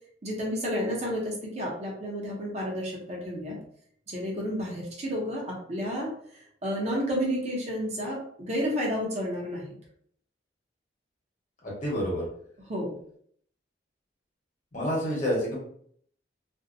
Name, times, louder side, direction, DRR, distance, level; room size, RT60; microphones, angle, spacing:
voice 1, 0.2-3.6 4.1-9.7 12.7-13.0, equal, 35° right, -2 dB, 0.7 m, -31 dB
voice 2, 11.6-12.2 14.7-15.6, equal, 45° left, -4 dB, 1.1 m, -28 dB
2.5 x 2.1 x 2.6 m, 0.63 s
head